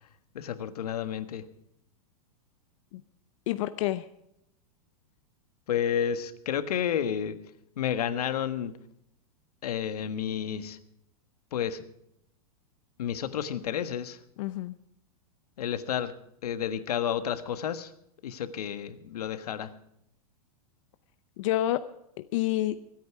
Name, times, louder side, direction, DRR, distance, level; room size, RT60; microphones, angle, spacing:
voice 1, 0.3-1.4 5.7-7.4 7.8-8.7 9.6-10.8 11.5-11.8 13.0-14.2 15.6-16.1 16.4-17.9 18.2-19.7, left 9 dB, 85° left, 12 dB, 1.5 m, -31 dB
voice 2, 3.5-4.1 14.4-14.8 21.4-21.8 22.2-22.8, left 14 dB, 55° left, 12 dB, 0.7 m, -28 dB
25.0 x 9.4 x 4.8 m, 0.78 s
supercardioid pair, 145°, 19 cm